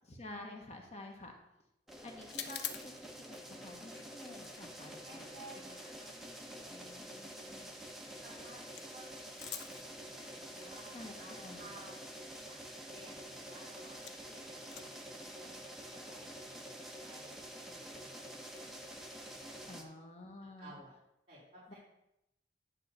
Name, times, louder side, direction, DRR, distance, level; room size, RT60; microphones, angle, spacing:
voice 1, 0.0-1.3 2.0-5.3 5.5-5.8 6.7-7.7 10.9-11.7 19.7-20.7 21.7-21.8, left 1 dB, 40° left, 2 dB, 1.3 m, -50 dB
sound 1, 1.9-19.8, equal, ahead, 1.1 m, -48 dB
sound 2, 2.2-14.3 14.6-19.9, left 8 dB, 75° left, 0.9 m, -51 dB
voice 2, 5.0-7.0 8.2-8.6 8.9-12.6 12.9-14.0 14.2-16.7 17.0-18.4 19.7-19.9 20.6-20.9 21.3-21.8, right 1 dB, 35° right, -10 dB, 4.0 m, -57 dB
11.0 x 3.7 x 6.7 m, 0.84 s
head